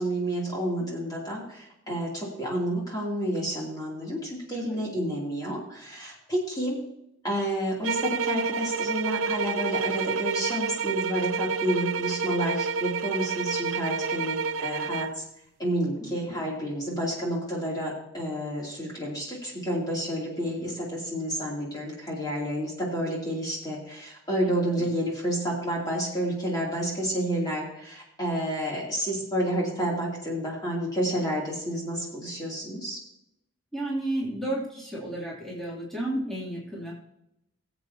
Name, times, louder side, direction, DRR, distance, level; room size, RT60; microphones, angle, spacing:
voice 1, 0.0-6.8 7.2-15.2 15.6-33.0, equal, 20° left, -4 dB, 2.8 m, -30 dB
sound 1, 7.8-15.2, right 5 dB, 70° right, 0.5 m, -29 dB
voice 2, 16.0-16.3 20.4-20.7 24.5-24.9 33.7-36.9, right 1 dB, ahead, -7 dB, 2.8 m, -33 dB
20.0 x 8.1 x 2.8 m, 0.82 s
head